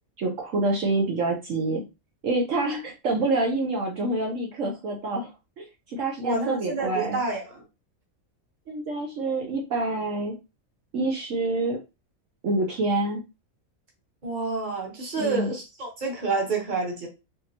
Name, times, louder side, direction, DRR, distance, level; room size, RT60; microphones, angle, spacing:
voice 1, 0.2-1.8 2.2-5.3 5.6-7.2 8.7-10.4 10.9-11.8 12.4-13.2 15.2-15.5, right 2 dB, 65° right, 1 dB, 1.2 m, -27 dB
voice 2, 6.2-7.6 14.2-17.1, right 3 dB, 35° right, 1 dB, 1.3 m, -29 dB
4.3 x 3.0 x 2.9 m, 0.27 s
omnidirectional pair, 1.5 m